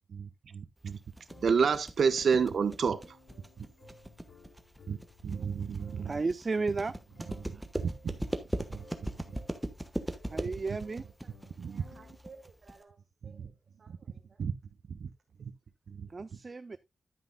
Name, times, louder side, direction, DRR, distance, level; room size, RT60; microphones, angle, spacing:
voice 1, 0.1-1.0 1.4-3.0 4.9-5.0 5.2-6.1 7.4-8.2 8.7-8.8 11.6-11.8 13.2-13.5 13.9-14.0 14.4-14.5 15.0-15.1 15.4-15.5 15.9-16.1, right 6 dB, 80° right, 0.9 m, -30 dB
sound 1, 0.9-12.8, right 1 dB, 5° right, 1.1 m, -39 dB
sound 2, 1.3-12.4, left 2 dB, 90° left, 2.4 m, -57 dB
voice 2, 6.0-6.9 7.5-7.6 10.3-11.0 16.1-16.8, right 3 dB, 35° right, 0.4 m, -33 dB
voice 3, 11.7-13.0 13.2-13.5 13.8-14.4, right 4 dB, 55° right, 1.2 m, -56 dB
10.5 x 9.5 x 2.2 m
wide cardioid pair, 150°, 0 cm